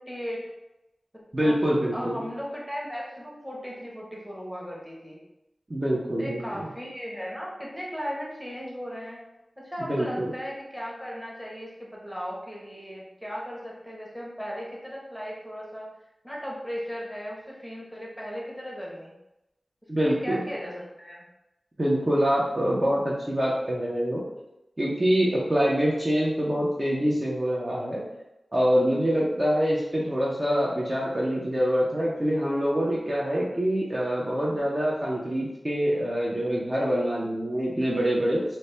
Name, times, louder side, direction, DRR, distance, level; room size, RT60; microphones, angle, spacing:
voice 1, 0.1-0.4 1.4-5.2 6.2-9.2 9.6-15.9 16.2-19.1 20.0-21.3, equal, ahead, -4 dB, 1.0 m, -36 dB
voice 2, 1.3-2.2 5.7-6.7 9.8-10.3 19.9-20.4 21.8-24.2 24.8-28.0 28.5-38.4, equal, 30° right, -5 dB, 0.6 m, -25 dB
4.1 x 2.2 x 3.2 m, 0.92 s
wide cardioid pair, 85°, 0 cm